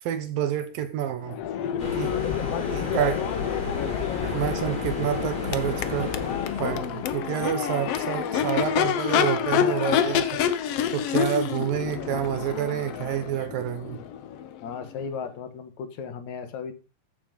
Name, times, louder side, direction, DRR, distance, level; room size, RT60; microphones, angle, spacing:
voice 1, 0.0-1.4 1.9-2.1 2.7-3.2 4.2-6.1 6.6-10.6 10.9-14.0, right 10 dB, 75° right, 2.9 m, -28 dB
Crowd / Race car auto racing / Accelerating revving vroom, 1.2-15.1, left 9 dB, 85° left, 1.3 m, -28 dB
sound 1, 1.8-7.4, left 3 dB, 30° left, 3.6 m, -33 dB
voice 2, 14.6-16.7, left 6 dB, 60° left, 2.7 m, -35 dB
14.5 x 7.0 x 5.4 m
omnidirectional pair, 4.1 m